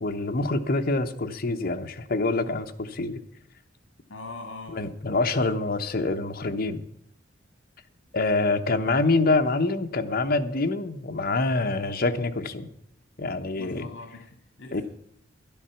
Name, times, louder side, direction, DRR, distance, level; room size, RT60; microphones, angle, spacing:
voice 1, 0.0-3.2 4.7-6.8 8.1-12.7 13.2-13.9 14.7-14.8, left 3 dB, 50° left, 6 dB, 1.0 m, -26 dB
voice 2, 4.1-4.8 13.6-14.8, left 3 dB, 70° left, 3 dB, 1.7 m, -41 dB
11.0 x 11.0 x 5.7 m, 0.73 s
head